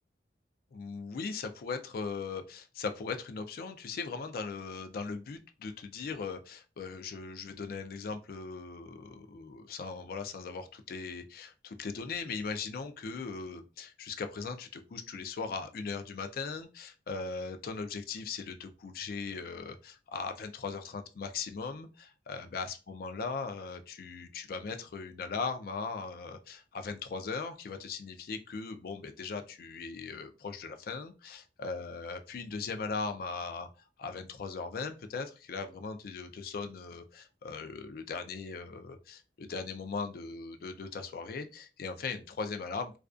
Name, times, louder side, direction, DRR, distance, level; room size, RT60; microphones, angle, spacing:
voice 1, 0.7-33.7 34.0-43.0, left 4 dB, 50° left, 8 dB, 0.3 m, -39 dB
2.3 x 2.2 x 2.4 m, 0.32 s
head